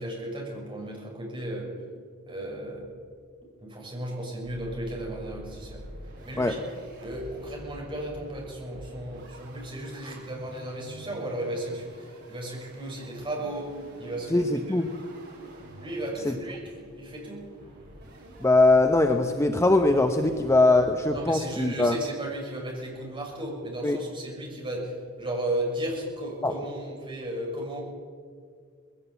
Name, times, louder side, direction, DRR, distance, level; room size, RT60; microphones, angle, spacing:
voice 1, 0.0-1.7 2.3-2.9 3.6-5.8 6.2-6.6 7.0-14.8 15.8-17.5 21.1-27.8, right 1 dB, 25° right, -2 dB, 6.5 m, -35 dB
sound 1, 2.8-3.2 3.6-3.7 3.9-4.0 4.4-20.8, equal, 55° right, 7.5 m, -47 dB
voice 2, 14.3-14.9 16.2-16.3 18.4-22.0 23.8-24.0 26.4-26.5, left 2 dB, 15° left, 6 dB, 0.9 m, -21 dB
20.0 x 17.0 x 8.2 m, 2.1 s
head